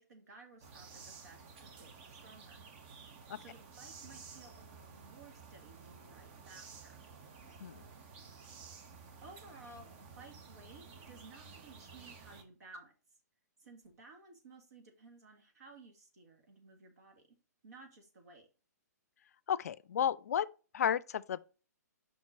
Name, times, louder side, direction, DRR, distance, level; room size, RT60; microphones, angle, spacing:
voice 1, 0.0-2.6 3.3-6.9 9.2-12.9 13.6-17.4 17.6-18.5, right 3 dB, 65° right, 1.9 m, -56 dB
sound 1, 0.6-12.4, right 5 dB, 40° right, 1.1 m, -53 dB
voice 2, 19.5-20.5 20.7-21.5, left 9 dB, 60° left, 0.4 m, -33 dB
5.4 x 4.4 x 4.2 m
figure-of-eight pair, 125°, 9 cm